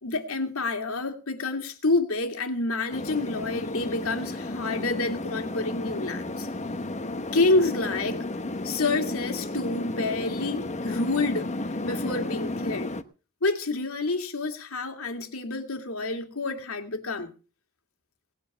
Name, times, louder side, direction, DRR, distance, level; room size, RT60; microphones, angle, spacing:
voice 1, 0.0-6.5 7.3-8.2 8.6-11.5 11.8-12.9 13.4-17.3, left 3 dB, 75° left, 2.3 m, -28 dB
sound 1, 2.9-13.0, left 2 dB, 35° left, 1.0 m, -33 dB
19.0 x 9.1 x 5.4 m
head